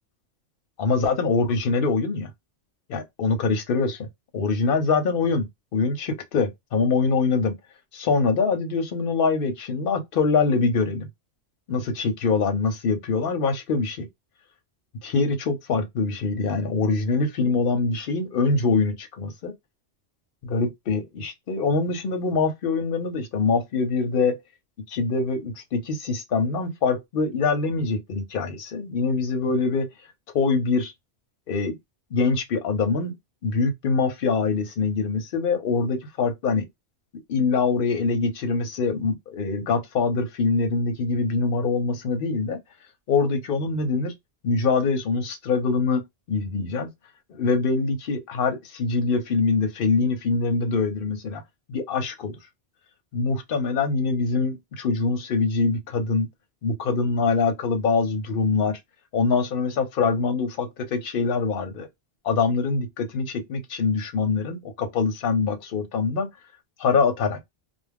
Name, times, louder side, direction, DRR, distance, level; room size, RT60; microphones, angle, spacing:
voice 1, 0.8-2.3 2.9-4.1 4.3-7.6 7.9-11.1 11.7-14.1 15.0-19.5 20.4-24.4 24.9-29.9 30.3-30.9 31.5-31.7 32.1-33.2 33.4-36.7 37.3-42.6 43.1-44.1 44.4-46.0 46.3-46.9 47.3-51.4 51.7-52.4 53.1-56.3 56.6-58.8 59.1-61.9 62.2-66.3 66.8-67.4, left 4 dB, 55° left, 0.8 m, -24 dB
2.3 x 2.2 x 3.4 m
omnidirectional pair, 1.2 m